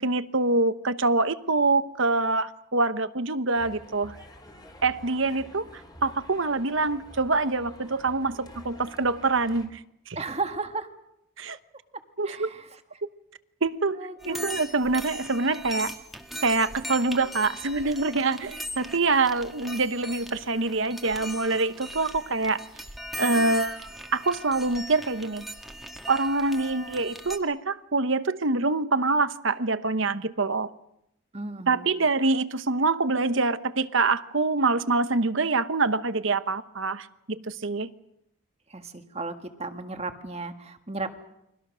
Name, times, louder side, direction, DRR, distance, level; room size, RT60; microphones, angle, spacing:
voice 1, 0.0-4.1 4.8-5.7 6.0-9.8 10.1-10.2 11.4-11.6 12.2-12.5 13.6-14.0 14.3-15.9 16.4-22.6 23.2-25.4 26.1-30.7 31.7-37.9, right 3 dB, 60° right, 1.1 m, -25 dB
sound 1, 3.5-9.7, left 1 dB, 20° left, 3.4 m, -48 dB
voice 2, 10.1-10.9 11.9-12.8 13.9-14.5 31.3-31.9 38.7-41.1, right 3 dB, 30° right, 1.7 m, -35 dB
sound 2, 14.2-27.4, equal, ahead, 1.9 m, -39 dB
30.0 x 23.5 x 6.4 m
head